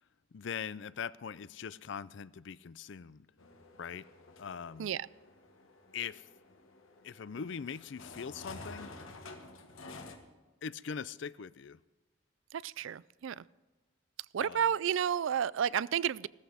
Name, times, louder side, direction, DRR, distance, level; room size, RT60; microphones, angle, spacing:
voice 1, 0.3-3.3 3.8-4.1 4.4-4.9 5.9-6.3 7.0-8.9 10.6-11.8 14.4-14.7, left 6 dB, 65° left, 0.4 m, -41 dB
sound 1, 3.4-10.2, left 2 dB, 85° left, 1.8 m, -51 dB
voice 2, 12.5-13.4 14.3-16.3, right 8 dB, 70° right, 0.4 m, -31 dB
16.0 x 14.0 x 5.0 m
head